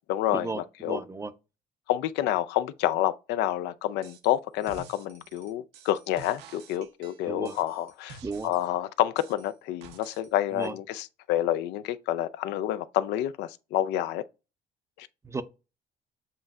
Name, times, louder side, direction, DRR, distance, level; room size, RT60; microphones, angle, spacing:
voice 1, 0.1-1.0 1.9-14.2 15.0-15.1, left 13 dB, 85° left, 0.4 m, -28 dB
voice 2, 0.9-1.3 7.3-7.6 8.2-8.5 10.5-10.7 15.2-15.4, right 3 dB, 15° right, 0.4 m, -34 dB
sound 1, 4.0-4.3 4.6-8.7 9.2-10.3 10.6-10.7, right 6 dB, 85° right, 0.7 m, -49 dB
7.4 x 2.6 x 2.3 m
cardioid pair, 110°, 17 cm